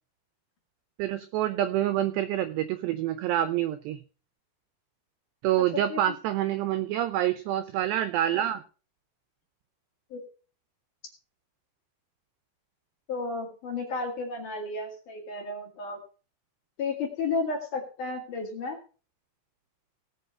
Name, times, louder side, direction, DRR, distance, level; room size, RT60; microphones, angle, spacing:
voice 1, 1.0-4.0 5.4-8.6, right 12 dB, 85° right, 12 dB, 2.4 m, -27 dB
voice 2, 13.1-16.0 16.8-18.8, left 3 dB, 50° left, 1 dB, 3.0 m, -32 dB
18.0 x 6.0 x 5.7 m, 0.36 s
omnidirectional pair, 5.8 m